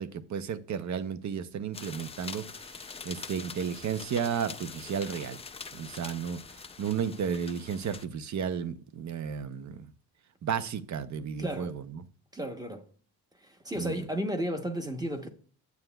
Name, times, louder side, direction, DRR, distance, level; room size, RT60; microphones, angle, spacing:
voice 1, 0.0-5.4 5.7-9.9 10.4-12.0 13.8-13.9, right 7 dB, 50° right, 0.6 m, -33 dB
sound 1, 1.7-8.0, left 5 dB, 15° left, 0.4 m, -44 dB
voice 2, 11.4-11.7 12.3-12.9 13.4-15.3, equal, 10° right, 0.9 m, -33 dB
9.4 x 7.8 x 2.3 m
cardioid pair, 135°, 37 cm